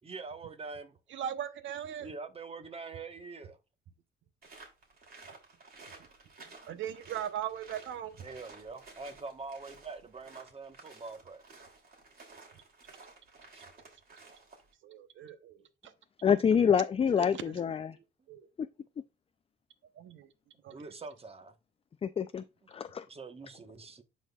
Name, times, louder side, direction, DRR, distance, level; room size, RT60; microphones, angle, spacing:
voice 1, 0.0-0.9 2.0-3.6 6.4-6.7 8.2-11.4 13.5-13.6 20.7-21.5 22.8-24.0, right 4 dB, 30° right, 1.1 m, -44 dB
voice 2, 1.1-2.1 6.7-8.2 14.8-15.9 17.1-17.6 18.3-18.5 20.0-20.3 20.6-20.9, right 10 dB, 70° right, 0.8 m, -39 dB
sound 1, 4.4-14.7, right 3 dB, 50° right, 3.0 m, -54 dB
voice 3, 16.2-18.0 18.6-18.7 22.0-23.0, left 7 dB, 30° left, 0.4 m, -27 dB
12.0 x 4.1 x 2.3 m
cardioid pair, 90°, 20 cm